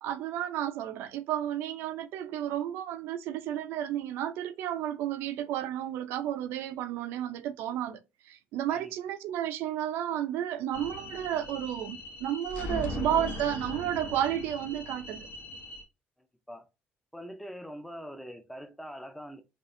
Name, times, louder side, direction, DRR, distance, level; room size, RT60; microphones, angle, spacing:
voice 1, 0.0-8.0 8.3-15.3, right 11 dB, 85° right, 0.5 m, -32 dB
sound 1, 10.7-15.8, left 2 dB, 65° left, 0.9 m, -39 dB
voice 2, 17.1-19.4, equal, 5° left, 0.5 m, -43 dB
5.3 x 2.5 x 2.5 m
cardioid pair, 160°, 4 cm